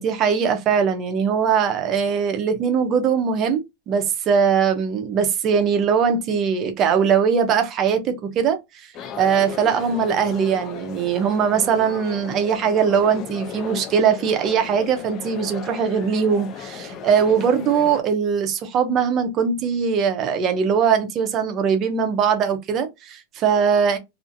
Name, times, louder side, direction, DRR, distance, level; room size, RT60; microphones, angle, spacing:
voice 1, 0.0-8.9 9.2-24.0, right 6 dB, 25° right, 0.5 m, -21 dB
sound 1, 8.9-18.0, left 8 dB, 30° left, 0.3 m, -36 dB
2.5 x 2.4 x 2.5 m
supercardioid pair, 170°, 0 cm